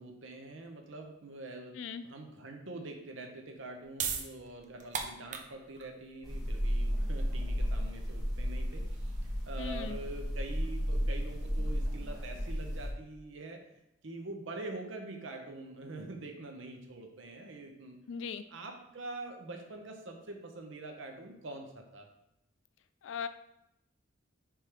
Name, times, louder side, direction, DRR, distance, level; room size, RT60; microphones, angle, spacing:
voice 1, 0.0-1.8 2.0-13.6 14.0-18.0 18.5-22.1, right 2 dB, 70° right, 3 dB, 0.8 m, -45 dB
voice 2, 1.7-2.0 9.6-10.0 18.1-18.4 23.0-23.3, left 6 dB, 70° left, 12 dB, 0.3 m, -38 dB
sound 1, 3.5-10.3, right 6 dB, 40° right, 0.5 m, -41 dB
sound 2, 6.2-12.9, equal, ahead, 1.0 m, -33 dB
4.9 x 3.5 x 3.0 m, 0.85 s
head